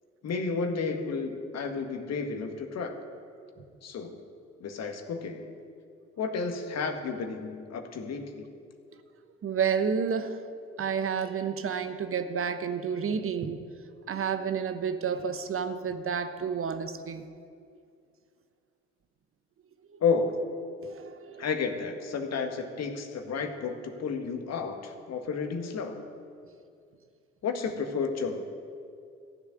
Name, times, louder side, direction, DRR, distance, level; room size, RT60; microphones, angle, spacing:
voice 1, 0.2-3.0 3.8-4.2 4.6-5.5 6.2-8.5 20.0-20.4 21.4-26.0 27.4-28.4, left 5 dB, 50° left, 5 dB, 1.8 m, -31 dB
voice 2, 9.4-10.4 10.8-13.6 14.1-17.3 19.9-20.0 20.8-21.5, right 6 dB, 40° right, 9 dB, 1.1 m, -30 dB
15.5 x 7.2 x 9.5 m, 2.3 s
figure-of-eight pair, 50°, 34 cm